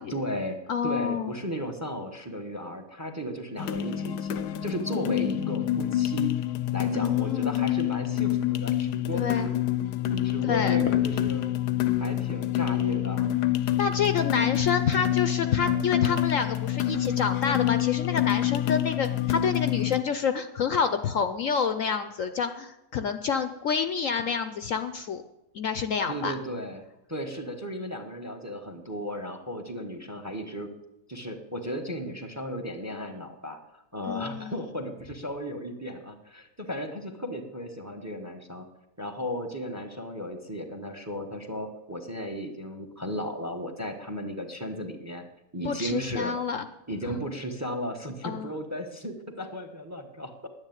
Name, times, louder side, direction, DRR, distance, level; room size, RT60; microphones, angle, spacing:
voice 1, 0.1-6.3 6.7-9.3 10.2-11.5 12.0-13.3 26.1-26.8 27.1-30.7 31.1-38.7 39.0-45.2 45.5-46.3 46.9-50.5, equal, 10° right, 7 dB, 1.0 m, -35 dB
voice 2, 0.7-1.3 7.0-7.7 9.1-9.5 10.4-10.8 13.8-25.2 25.5-26.3 34.1-34.5 45.6-46.7 48.2-48.5, left 6 dB, 60° left, 10 dB, 0.9 m, -28 dB
sound 1, 3.6-20.0, left 12 dB, 80° left, 1.3 m, -27 dB
10.5 x 9.7 x 9.1 m, 0.90 s
omnidirectional pair, 1.7 m